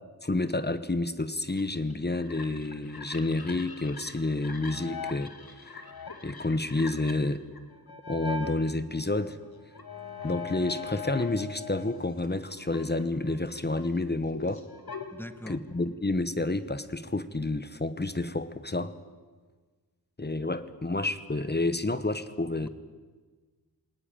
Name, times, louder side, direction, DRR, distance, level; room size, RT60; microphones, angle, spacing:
voice 1, 0.2-5.3 5.6-5.8 6.2-7.4 8.1-9.4 10.2-14.6 15.5-18.9 20.2-22.7, left 2 dB, 30° left, 13 dB, 1.1 m, -29 dB
sound 1, 1.5-8.6 9.0-12.0 12.2-15.8, left 5 dB, 80° left, 2.2 m, -41 dB
voice 2, 15.1-15.6 22.6-22.7, left 1 dB, 5° left, 11 dB, 1.3 m, -41 dB
20.5 x 19.0 x 9.1 m, 1.4 s
wide cardioid pair, 80°, 36 cm